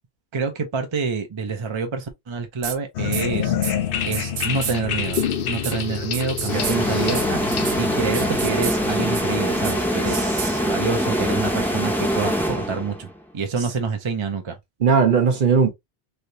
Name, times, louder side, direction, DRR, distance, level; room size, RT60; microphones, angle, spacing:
voice 1, 0.3-3.5 4.0-7.4 7.8-10.2 10.7-13.1 13.3-14.6, right 5 dB, 35° right, 0.6 m, -27 dB
sound 1, 2.6-2.8 3.1-3.2 3.6-3.7 4.1-4.7 5.1-5.2 5.6-5.7 6.1-6.8 7.1-7.2 7.5-7.8 8.1-8.8 9.1-9.2 9.6-9.7 10.1-10.5, right 8 dB, 80° right, 0.9 m, -29 dB
sound 2, 2.9-10.4, left 8 dB, 65° left, 0.8 m, -28 dB
sound 3, 6.5-13.1, equal, ahead, 0.7 m, -23 dB
voice 2, 10.1-10.6 14.8-15.7, right 6 dB, 55° right, 0.9 m, -19 dB
3.2 x 2.8 x 2.6 m
omnidirectional pair, 1.0 m